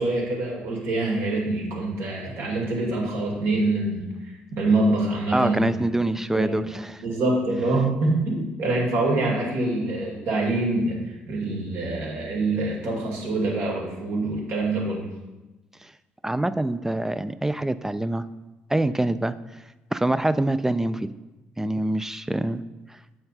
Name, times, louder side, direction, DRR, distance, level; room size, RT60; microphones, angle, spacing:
voice 1, 0.0-5.9 6.3-15.1, right 2 dB, 70° right, -2 dB, 2.2 m, -25 dB
voice 2, 5.3-7.0 15.8-15.9 16.2-18.3 18.7-19.4 19.9-21.1 21.6-22.6, right 1 dB, 10° right, 14 dB, 0.3 m, -25 dB
7.7 x 4.3 x 4.2 m, 1.1 s
supercardioid pair, 70°, 4 cm